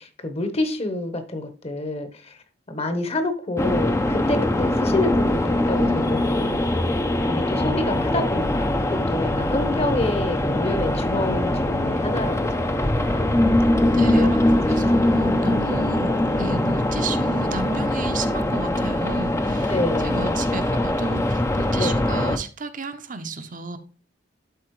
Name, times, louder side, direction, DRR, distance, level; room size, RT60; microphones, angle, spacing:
voice 1, 0.0-2.4 2.7-6.7 7.3-13.3 13.9-15.0 15.7-15.9 19.7-20.4 21.8-22.0, left 2 dB, 35° left, 8 dB, 1.1 m, -28 dB
sound 1, 3.6-22.4, left 1 dB, 15° left, 0.6 m, -22 dB
voice 2, 5.8-6.5 13.9-14.4 14.7-16.1 16.4-19.7 20.0-23.8, right 3 dB, 50° right, 8 dB, 0.8 m, -32 dB
11.5 x 4.2 x 3.1 m, 0.37 s
head